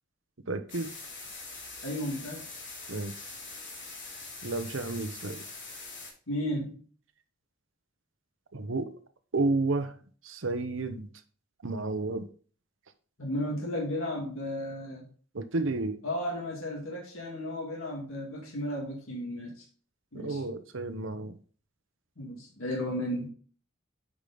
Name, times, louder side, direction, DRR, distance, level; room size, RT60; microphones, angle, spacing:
voice 1, 0.5-0.9 2.9-3.1 4.4-5.5 8.5-8.9 9.3-10.0 10.2-11.1 11.6-12.3 15.3-16.0 20.1-21.4, right 2 dB, 65° right, 10 dB, 0.9 m, -31 dB
sound 1, 0.7-6.1, left 3 dB, 60° left, 3.1 m, -43 dB
voice 2, 1.8-2.4 6.3-6.8 13.2-15.1 16.0-19.5 20.1-20.4 22.2-23.3, left 1 dB, 80° left, -1 dB, 2.2 m, -34 dB
8.4 x 5.1 x 3.9 m, 0.42 s
head